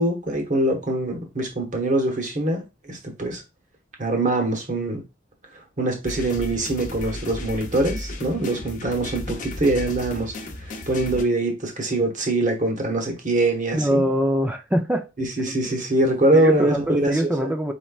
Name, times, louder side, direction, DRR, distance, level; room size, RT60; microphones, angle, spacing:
voice 1, 0.0-3.4 4.0-5.0 5.8-10.3 10.6-14.1 15.2-17.5, right 2 dB, 40° right, 1.3 m, -23 dB
sound 1, 6.1-11.2, left 2 dB, 40° left, 0.8 m, -34 dB
voice 2, 13.7-15.1 15.6-15.8 16.3-17.7, equal, 10° right, 0.4 m, -23 dB
4.4 x 4.3 x 2.4 m
head